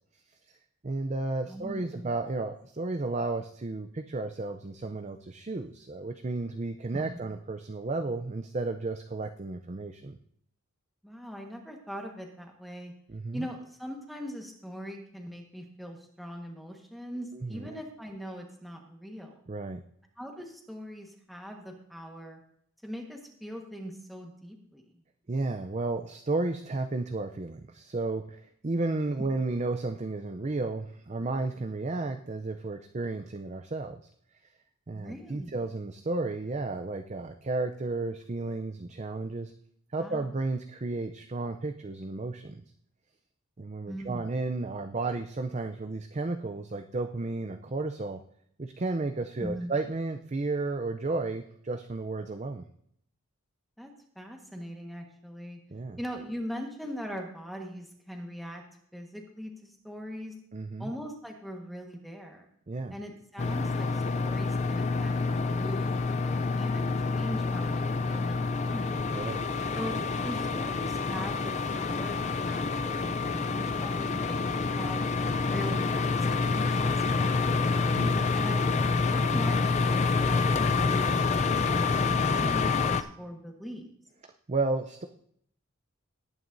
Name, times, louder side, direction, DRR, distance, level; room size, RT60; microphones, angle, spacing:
voice 1, 0.8-10.2 13.1-13.5 17.3-17.8 19.5-19.8 25.3-34.0 34.9-39.5 39.9-42.6 43.6-48.2 48.6-52.6 55.7-56.0 60.5-60.9 62.7-62.9 69.1-69.4 77.9-78.3 84.5-85.1, right 3 dB, 30° right, 7 dB, 0.5 m, -33 dB
voice 2, 1.5-2.1 6.9-7.2 11.0-12.9 13.3-19.4 20.2-22.4 22.8-24.8 34.9-35.5 40.0-40.3 43.9-44.3 49.4-49.7 53.8-55.6 56.0-58.6 58.9-60.4 60.8-62.5 62.9-69.0 69.7-75.0 75.5-77.9 78.3-83.9, equal, ahead, 1 dB, 1.3 m, -41 dB
sound 1, 63.4-83.0, left 4 dB, 30° left, 0.4 m, -27 dB
18.0 x 9.2 x 2.6 m, 0.67 s
head